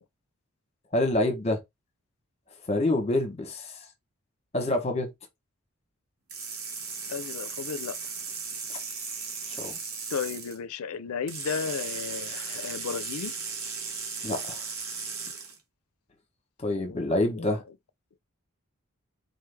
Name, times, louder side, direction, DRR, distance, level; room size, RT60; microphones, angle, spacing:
voice 1, 0.9-1.6 2.7-3.8 4.5-5.1 9.5-9.7 14.2-14.6 16.6-17.6, left 1 dB, 30° left, 1.0 m, -27 dB
sound 1, 6.3-10.6 11.3-15.6, right 5 dB, 80° right, 1.2 m, -36 dB
voice 2, 7.1-7.9 10.1-13.3 16.7-17.6, left 6 dB, 90° left, 0.4 m, -34 dB
4.1 x 3.2 x 3.3 m
head